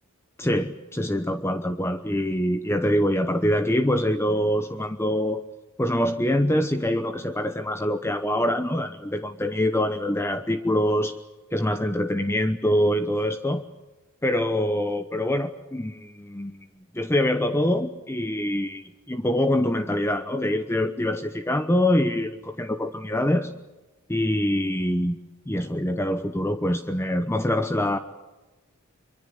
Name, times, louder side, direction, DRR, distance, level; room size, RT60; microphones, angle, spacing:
voice 1, 0.4-5.4 5.8-11.2 11.5-13.6 14.2-16.7 16.9-23.5 24.1-25.2 25.5-28.0, left 1 dB, 10° left, 9 dB, 0.9 m, -24 dB
25.0 x 23.5 x 7.9 m, 1.1 s
head